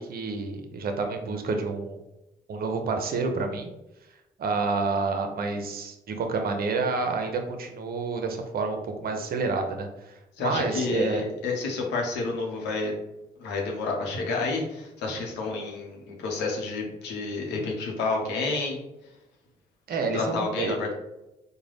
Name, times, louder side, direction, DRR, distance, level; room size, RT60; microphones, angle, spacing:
voice 1, 0.0-2.0 2.5-3.7 4.4-11.2 19.9-20.8, right 4 dB, 60° right, 5 dB, 0.7 m, -29 dB
voice 2, 10.4-12.9 13.4-18.8 20.1-20.9, left 3 dB, 75° left, 0 dB, 0.8 m, -29 dB
3.8 x 2.2 x 3.3 m, 0.94 s
hypercardioid pair, 45°, 18 cm